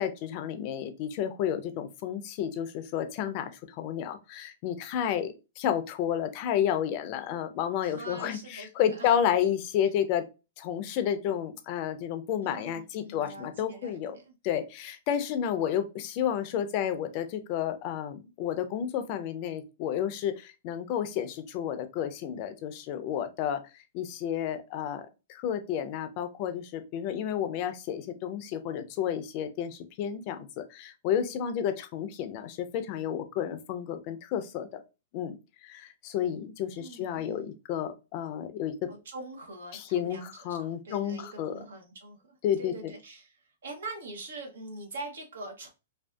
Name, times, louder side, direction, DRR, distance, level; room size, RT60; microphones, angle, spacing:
voice 1, 0.0-3.5 3.8-10.3 10.6-14.2 14.4-23.6 23.9-34.8 35.1-35.4 35.6-38.9 39.7-41.5 42.4-42.9, left 9 dB, 40° left, 0.4 m, -31 dB
voice 2, 7.8-9.1 12.4-14.3 36.7-37.5 38.9-45.7, right 2 dB, 80° right, 0.8 m, -43 dB
2.5 x 2.3 x 2.2 m
hypercardioid pair, 135°, 0 cm